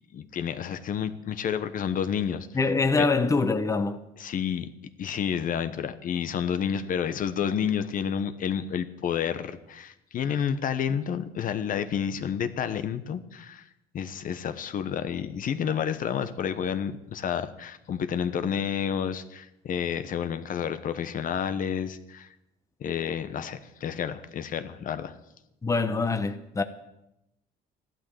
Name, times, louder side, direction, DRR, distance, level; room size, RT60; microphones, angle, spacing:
voice 1, 0.1-2.5 3.0-3.1 4.2-4.7 5.0-13.6 13.9-22.3 22.8-25.1, left 8 dB, 55° left, 1.1 m, -30 dB
voice 2, 2.5-4.0 25.6-26.6, left 3 dB, 20° left, 1.0 m, -24 dB
14.0 x 12.0 x 7.8 m
cardioid pair, 110°, 17 cm